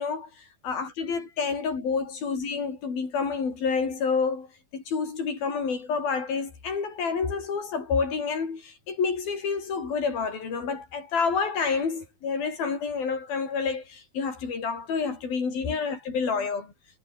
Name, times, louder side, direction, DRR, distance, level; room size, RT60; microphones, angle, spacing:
voice 1, 0.0-16.7, left 5 dB, 75° left, 7.4 m, -29 dB
omnidirectional pair, 4.3 m